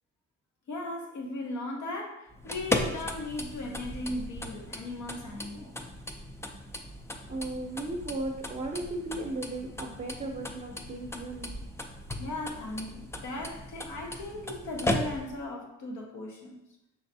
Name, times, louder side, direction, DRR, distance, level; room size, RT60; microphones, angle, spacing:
voice 1, 0.7-5.8 12.2-16.6, left 2 dB, 75° left, 0 dB, 0.9 m, -37 dB
sound 1, 2.3-15.5, left 1 dB, 10° left, 0.4 m, -37 dB
voice 2, 7.3-11.6, right 2 dB, 25° right, -2 dB, 0.6 m, -36 dB
5.4 x 3.3 x 2.7 m, 0.86 s
cardioid pair, 90°, 30 cm